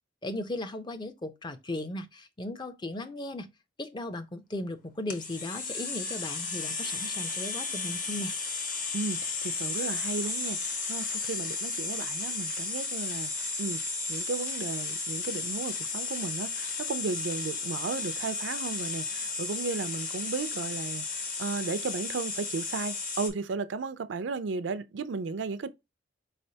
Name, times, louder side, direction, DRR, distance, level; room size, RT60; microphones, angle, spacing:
voice 1, 0.2-3.5 3.8-8.3, left 1 dB, 25° left, 0.5 m, -37 dB
sound 1, 5.1-23.3, left 4 dB, 45° left, 1.0 m, -34 dB
voice 2, 8.9-13.8 14.1-25.7, right 4 dB, 70° right, 0.4 m, -35 dB
4.7 x 3.3 x 2.7 m
head